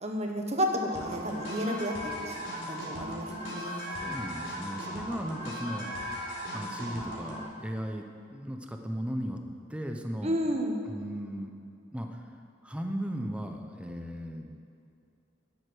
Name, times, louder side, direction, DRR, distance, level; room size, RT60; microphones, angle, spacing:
voice 1, 0.0-3.7 10.2-10.8, equal, 35° right, 2 dB, 1.3 m, -32 dB
sound 1, 0.9-7.4, equal, 75° left, 3.5 m, -37 dB
voice 2, 3.6-5.9 6.5-8.0 8.3-9.4 9.7-10.4 10.8-11.6 11.9-12.2 12.6-14.6, equal, 5° right, 4 dB, 0.8 m, -36 dB
12.0 x 7.9 x 6.4 m, 2.4 s
head